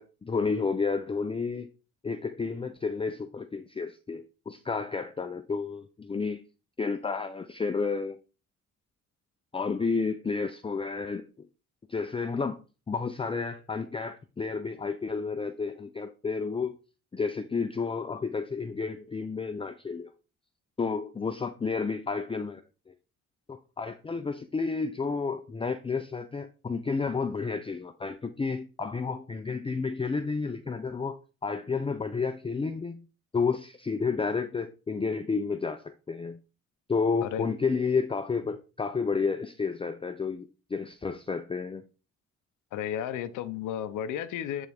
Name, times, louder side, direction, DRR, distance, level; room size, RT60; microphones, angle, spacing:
voice 1, 0.0-1.7 2.0-6.4 6.8-8.2 9.5-11.3 11.9-12.6 12.9-16.7 17.1-20.1 20.8-22.6 23.5-33.0 33.3-36.4 36.9-41.8, left 4 dB, 20° left, 0.5 m, -31 dB
voice 2, 42.7-44.7, left 10 dB, 90° left, 0.7 m, -33 dB
8.9 x 3.5 x 3.5 m
cardioid pair, 90°, 30 cm